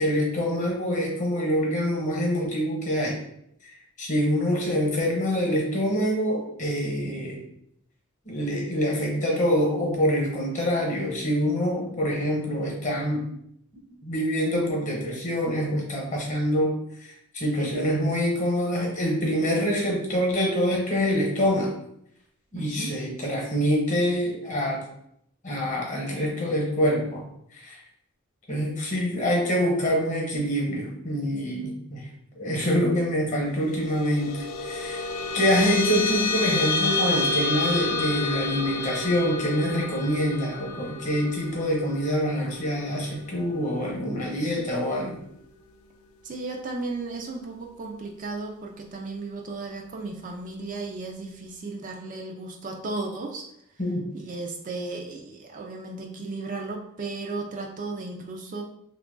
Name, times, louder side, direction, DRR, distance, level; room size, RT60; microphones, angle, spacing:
voice 1, 0.0-3.2 4.0-7.4 8.3-13.2 14.0-16.7 17.0-21.7 22.5-24.8 25.4-27.2 27.5-27.8 28.5-32.0 32.3-35.0 35.3-45.2 53.8-54.0, equal, 35° left, -1 dB, 1.0 m, -25 dB
voice 2, 22.5-23.0 46.2-53.4 54.1-58.6, right 3 dB, 40° right, 1 dB, 0.4 m, -35 dB
sound 1, 33.6-44.4, left 3 dB, 75° left, 0.3 m, -30 dB
2.9 x 2.4 x 3.7 m, 0.74 s
head